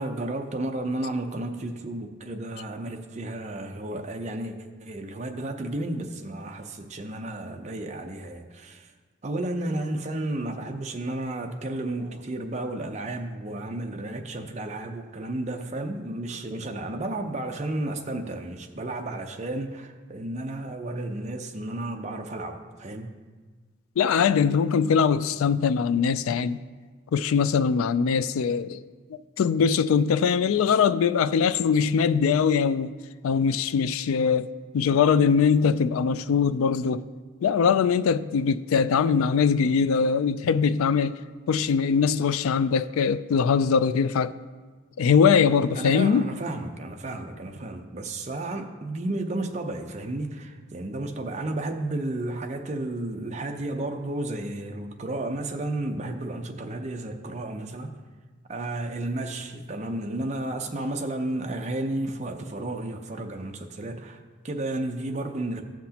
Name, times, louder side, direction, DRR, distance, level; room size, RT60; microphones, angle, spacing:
voice 1, 0.0-8.9 9.2-23.2 45.7-58.0 58.5-65.6, right 2 dB, 35° right, 0.6 m, -32 dB
voice 2, 24.0-26.6 27.1-28.8 29.4-32.9 33.2-34.5 34.7-37.0 37.4-41.2 41.5-44.3 45.0-46.3, left 6 dB, 90° left, 0.3 m, -22 dB
14.5 x 5.9 x 2.8 m
head